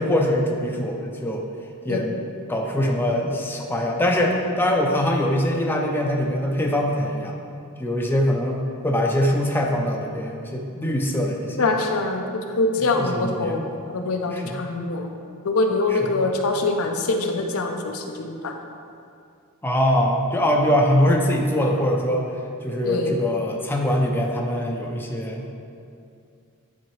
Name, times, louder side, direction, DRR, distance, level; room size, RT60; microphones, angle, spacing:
voice 1, 0.0-1.4 1.8-2.2 2.5-7.4 7.8-11.8 12.8-13.7 14.3-14.6 15.9-16.2 19.6-22.3 22.6-25.5, equal, 10° left, 0 dB, 0.5 m, -23 dB
voice 2, 11.6-15.1 15.4-18.5 22.8-23.1, left 3 dB, 75° left, 3 dB, 0.6 m, -24 dB
10.0 x 4.0 x 3.2 m, 2.5 s
head